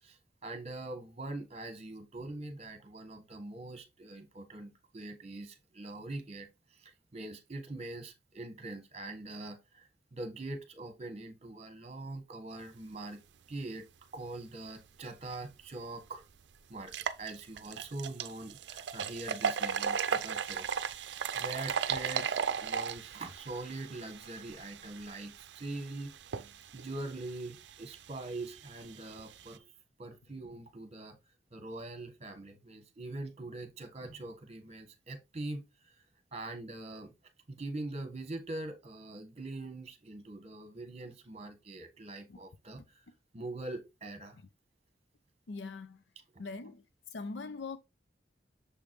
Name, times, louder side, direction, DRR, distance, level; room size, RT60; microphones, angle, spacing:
voice 1, 0.0-13.2 13.5-13.8 14.1-16.3 16.7-26.5 26.7-29.7 30.0-31.2 31.5-36.0 36.3-37.1 37.5-43.1 43.3-44.4, right 2 dB, 35° right, 1.3 m, -43 dB
sound 1, 15.5-15.6 16.1-16.2 16.8-29.6, right 7 dB, 75° right, 0.5 m, -37 dB
voice 2, 45.5-46.0 46.4-46.8 47.1-47.8, left 4 dB, 85° left, 0.5 m, -42 dB
6.8 x 5.1 x 3.1 m
head